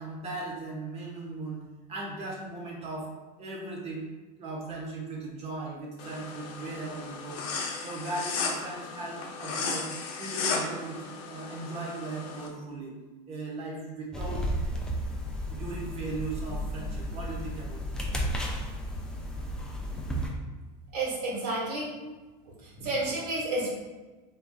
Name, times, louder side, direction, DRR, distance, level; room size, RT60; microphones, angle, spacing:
voice 1, 0.0-1.6 1.9-3.1 3.4-4.1 4.4-7.4 7.8-9.9 10.2-12.9 13.3-14.5 15.5-17.8, right 2 dB, 30° right, -3 dB, 1.1 m, -38 dB
sound 1, 6.0-12.5, left 4 dB, 70° left, 0.7 m, -35 dB
sound 2, 14.1-20.3, equal, 5° left, 0.4 m, -33 dB
voice 2, 20.9-21.9 22.6-23.8, right 2 dB, 75° right, -5 dB, 1.4 m, -30 dB
4.5 x 2.7 x 2.3 m, 1.2 s
supercardioid pair, 125°, 21 cm